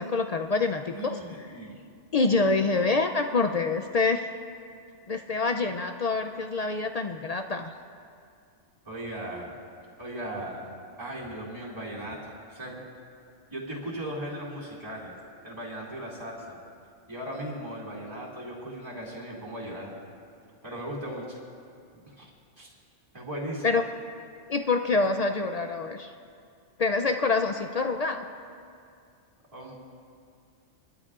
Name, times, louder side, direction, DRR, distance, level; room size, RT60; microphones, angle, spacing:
voice 1, 0.0-1.2 2.1-4.3 5.1-7.7 23.6-23.9 24.5-26.1 26.8-28.3, left 3 dB, 60° left, 6 dB, 0.4 m, -26 dB
voice 2, 0.9-1.9 8.8-9.5 10.0-12.8 13.5-15.2 15.4-16.6 17.1-20.0 20.6-21.4 21.9-22.3 22.6-22.7 23.1-23.7 29.5-29.7, right 1 dB, 25° right, -6 dB, 2.5 m, -37 dB
22.0 x 12.5 x 2.4 m, 2.4 s
omnidirectional pair, 1.2 m